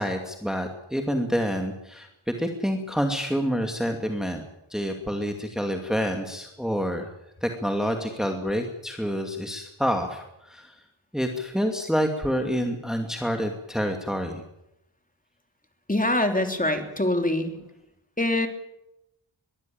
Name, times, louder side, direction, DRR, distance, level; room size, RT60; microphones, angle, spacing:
voice 1, 0.0-4.4 4.7-7.1 7.4-10.7 11.1-14.4, equal, ahead, 4 dB, 2.4 m, -28 dB
voice 2, 15.9-17.5 18.2-18.5, left 1 dB, 15° left, 5 dB, 3.2 m, -24 dB
22.5 x 15.0 x 8.9 m, 0.86 s
wide cardioid pair, 70°, 48 cm